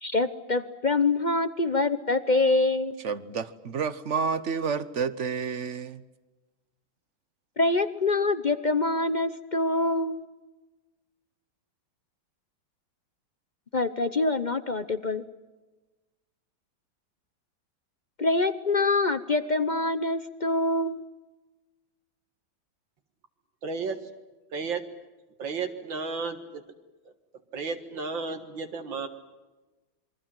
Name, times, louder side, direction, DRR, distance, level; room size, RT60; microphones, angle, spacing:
voice 1, 0.0-3.0 7.6-10.2 13.7-15.2 18.2-21.0, left 2 dB, 45° left, 12 dB, 0.6 m, -25 dB
voice 2, 3.0-6.0, right 5 dB, 45° right, 14 dB, 1.1 m, -30 dB
voice 3, 23.6-24.0 24.5-24.8 25.4-26.6 27.5-29.1, right 4 dB, 75° right, 5 dB, 2.4 m, -33 dB
27.5 x 23.5 x 7.6 m, 1.2 s
omnidirectional pair, 2.1 m